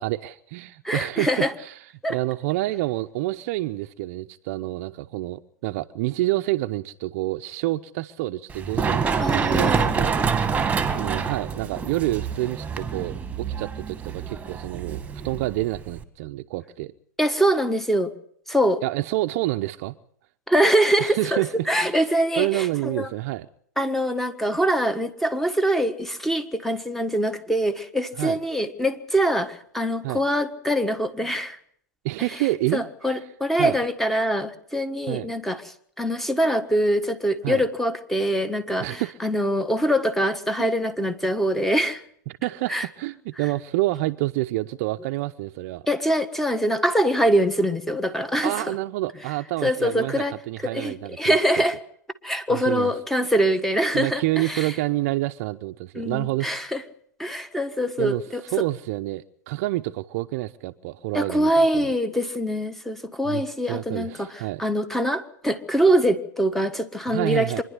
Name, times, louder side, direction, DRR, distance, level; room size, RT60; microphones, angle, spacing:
voice 1, 0.0-1.7 2.1-10.2 10.9-16.9 18.8-20.0 21.0-22.0 22.4-23.5 28.2-28.4 30.0-30.2 32.0-32.8 33.6-33.8 35.1-35.3 37.4-37.6 38.8-39.2 40.6-40.7 42.4-45.8 48.4-51.4 52.5-52.9 53.9-56.6 58.0-58.2 58.5-61.9 63.3-64.6 67.1-67.6, right 18 dB, 50° right, 0.7 m, -28 dB
voice 2, 0.8-1.5 2.0-2.2 9.2-9.9 17.2-18.1 18.5-18.8 20.5-23.1 23.8-31.6 32.3-32.4 32.7-42.0 42.7-42.9 45.9-48.8 49.6-50.3 50.6-51.8 52.2-54.7 55.9-56.8 57.2-58.6 61.1-64.3 64.6-67.6, equal, 5° left, 1.5 m, -24 dB
Run, 8.5-16.0, right 5 dB, 15° right, 1.7 m, -26 dB
25.5 x 11.0 x 9.6 m
hypercardioid pair, 115°, 10 cm